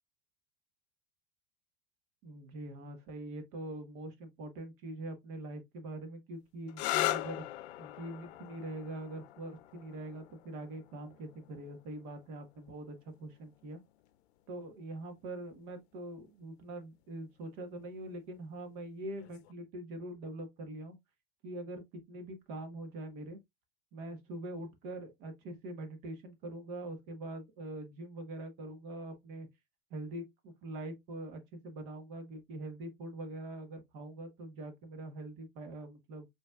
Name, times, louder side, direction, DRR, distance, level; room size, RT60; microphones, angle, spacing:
voice 1, 2.2-7.5 7.8-13.8 14.5-21.0 21.4-21.8 22.1-23.4 23.9-29.5 29.9-36.3, right 1 dB, 55° right, 1.6 m, -43 dB
sound 1, 6.7-14.1 15.1-15.6 19.2-19.5, left 15 dB, 80° left, 0.6 m, -40 dB
5.3 x 3.3 x 2.4 m
supercardioid pair, 125°, 32 cm